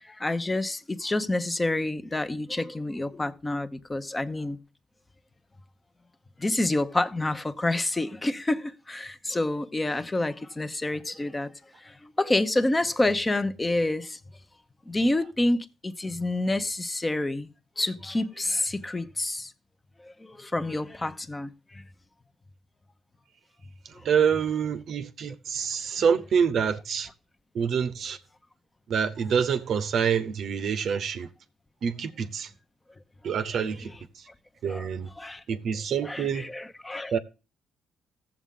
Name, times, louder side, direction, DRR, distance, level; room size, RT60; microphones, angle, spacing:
voice 1, 0.0-4.6 6.4-11.5 12.0-14.2 14.9-17.5 17.8-19.5 20.2-21.5 33.8-33.9 34.7-34.9 35.2-35.4 36.1-37.2, left 2 dB, 20° left, 0.8 m, -28 dB
voice 2, 24.0-27.1 27.5-28.2 28.9-31.3 31.8-32.5 33.2-33.9 34.6-35.1 35.5-36.5 37.1-37.2, right 7 dB, 65° right, 0.7 m, -26 dB
14.5 x 7.3 x 3.7 m
cardioid pair, 90°, 0 cm